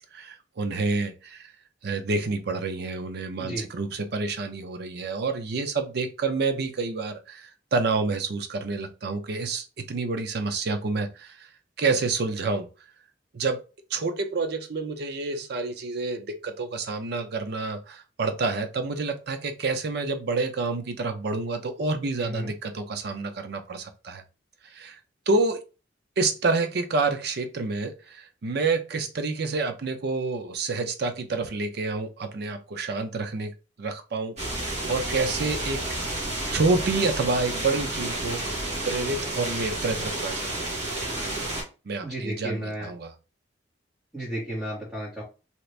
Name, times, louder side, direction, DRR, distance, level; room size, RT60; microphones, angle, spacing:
voice 1, 0.1-1.5 1.8-11.5 11.8-12.7 13.3-13.6 13.9-24.2 24.7-25.0 25.3-25.6 26.2-33.5 33.8-34.6 34.9-35.8 36.5-38.4 38.8-40.7 41.9-43.1, right 3 dB, 60° right, 7 dB, 0.5 m, -28 dB
voice 2, 22.2-22.5 42.0-42.9 44.1-45.2, right 1 dB, 10° right, -9 dB, 1.2 m, -33 dB
sound 1, 34.4-41.6, right 2 dB, 40° right, 1.3 m, -31 dB
2.9 x 2.5 x 3.2 m, 0.31 s
head